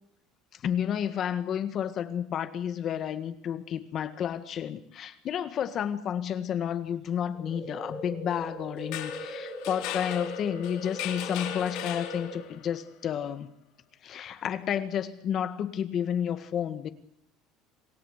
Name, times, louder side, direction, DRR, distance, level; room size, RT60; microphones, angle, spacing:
voice 1, 0.5-13.5 14.0-16.9, left 9 dB, 35° left, 1.7 m, -31 dB
sound 1, 7.3-12.4, equal, 40° right, 6.7 m, -39 dB
sound 2, 8.8-12.7, left 12 dB, 65° left, 3.9 m, -38 dB
27.0 x 17.5 x 8.2 m
cardioid pair, 165°, 0 cm